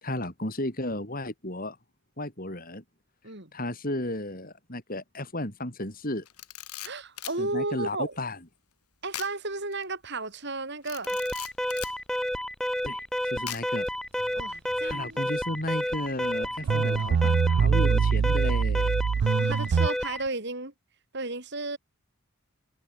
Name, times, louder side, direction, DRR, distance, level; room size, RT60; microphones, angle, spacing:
voice 1, 0.0-1.8 2.2-2.8 3.5-6.3 7.4-8.4 12.8-13.9 14.8-18.9, left 1 dB, 40° left, 5.2 m, -34 dB
Camera, 6.2-7.4 9.1-9.4 9.7-9.8 10.8-12.0 13.5-13.9, left 12 dB, 90° left, 5.1 m, -39 dB
voice 2, 6.8-8.2 9.0-11.2 14.3-15.2 19.2-20.7 21.1-21.8, right 2 dB, 50° right, 4.8 m, -33 dB
Alarm, 11.1-20.3, equal, ahead, 1.4 m, -30 dB
sound 1, 16.3-16.4 16.6-19.9, right 6 dB, 80° right, 0.4 m, -23 dB
head